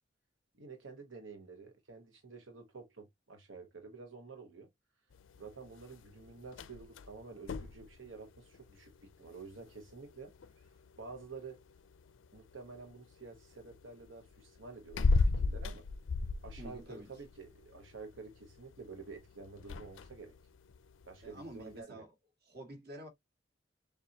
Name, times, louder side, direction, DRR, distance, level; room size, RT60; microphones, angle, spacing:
voice 1, 0.5-4.7 5.4-11.6 12.3-15.8 16.4-20.3 21.1-22.0, right 4 dB, 90° right, 0.9 m, -50 dB
sound 1, 5.1-21.8, left 3 dB, 90° left, 0.4 m, -39 dB
voice 2, 16.6-17.1 21.2-22.1 22.4-23.1, right 1 dB, 55° right, 2.0 m, -48 dB
6.6 x 2.3 x 2.8 m
head